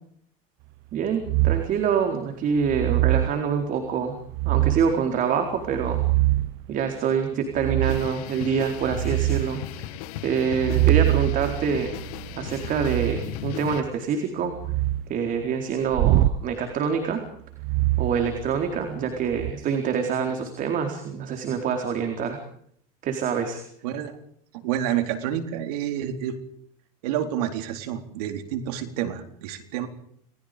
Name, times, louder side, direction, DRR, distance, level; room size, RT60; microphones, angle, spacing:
voice 1, 0.9-4.2 4.4-6.0 6.7-9.6 10.2-11.9 12.4-14.6 15.1-17.2 18.0-22.4 23.0-23.6, right 6 dB, 45° right, 5 dB, 4.2 m, -26 dB
sound 1, 1.2-1.8 2.6-3.4 4.3-5.0 5.6-6.6 7.6-8.2 8.6-9.5 10.5-13.2 14.5-15.1 15.9-16.4 17.6-18.8 19.3-19.5, right 17 dB, 65° right, 1.0 m, -24 dB
sound 2, 7.8-13.8, left 12 dB, 80° left, 2.1 m, -36 dB
voice 2, 23.8-24.2 24.5-26.4 27.0-29.9, right 10 dB, 85° right, 6 dB, 4.1 m, -29 dB
29.5 x 20.5 x 5.2 m, 0.66 s
supercardioid pair, 125°, 19 cm